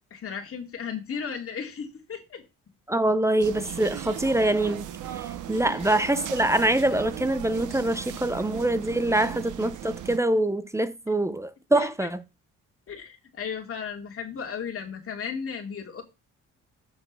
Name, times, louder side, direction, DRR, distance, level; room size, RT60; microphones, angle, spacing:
voice 1, 0.1-2.4 5.7-5.8 11.7-12.1 12.9-16.0, left 6 dB, 45° left, 2.7 m, -35 dB
voice 2, 2.9-4.9 5.2-12.2, right 1 dB, 10° right, 0.6 m, -24 dB
sound 1, 3.4-10.2, right 11 dB, 80° right, 1.1 m, -37 dB
8.0 x 5.1 x 5.3 m
cardioid pair, 90°, 30 cm